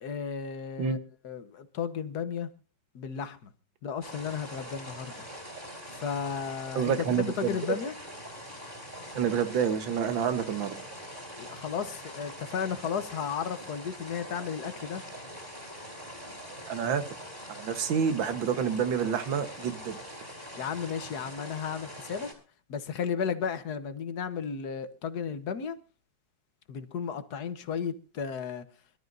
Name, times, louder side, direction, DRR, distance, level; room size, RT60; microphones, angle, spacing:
voice 1, 0.0-1.0 1.2-2.5 2.9-3.5 3.8-5.2 5.9-7.9 11.4-15.0 20.6-22.3 22.7-25.8 26.7-28.7, left 7 dB, 60° left, 1.4 m, -34 dB
sound 1, 4.0-22.3, equal, 25° right, 4.0 m, -43 dB
voice 2, 6.8-7.6 9.1-10.8 16.7-17.0 17.6-20.0, right 7 dB, 75° right, 2.0 m, -28 dB
25.5 x 12.5 x 2.6 m
omnidirectional pair, 2.1 m